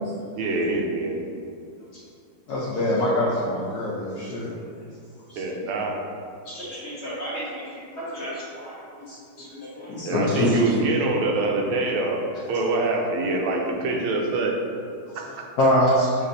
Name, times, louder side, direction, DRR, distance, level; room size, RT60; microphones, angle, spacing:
voice 1, 0.4-1.2 5.4-6.0 10.0-12.2 12.5-14.6 15.2-15.5, right 2 dB, 90° right, 1 dB, 1.5 m, -25 dB
voice 2, 2.5-4.5 5.3-5.4 9.1-10.6 15.6-15.9, left 1 dB, 70° left, -7 dB, 0.9 m, -24 dB
voice 3, 6.4-7.6 7.9-8.7 9.4-9.5 9.8-10.4, equal, 40° left, -9 dB, 1.1 m, -35 dB
7.3 x 2.5 x 2.6 m, 2.3 s
omnidirectional pair, 2.3 m